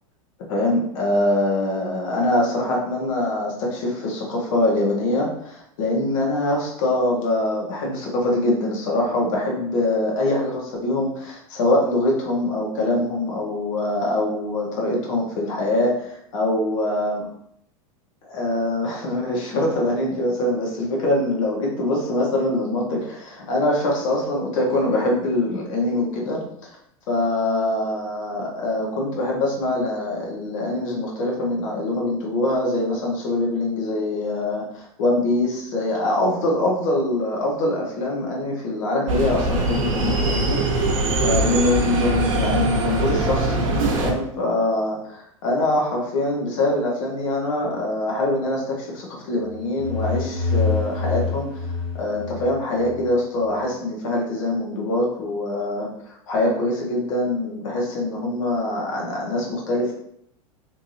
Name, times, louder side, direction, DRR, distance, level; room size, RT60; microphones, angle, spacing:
voice 1, 0.5-17.2 18.3-26.8 27.1-40.6 41.2-51.6 51.9-59.9, left 1 dB, 70° left, -2 dB, 1.4 m, -23 dB
sound 1, 39.1-44.1, right 2 dB, 70° right, 0.9 m, -22 dB
sound 2, 49.4-53.1, left 4 dB, 85° left, 1.2 m, -26 dB
3.4 x 3.2 x 2.7 m, 0.71 s
hypercardioid pair, 95°, 17 cm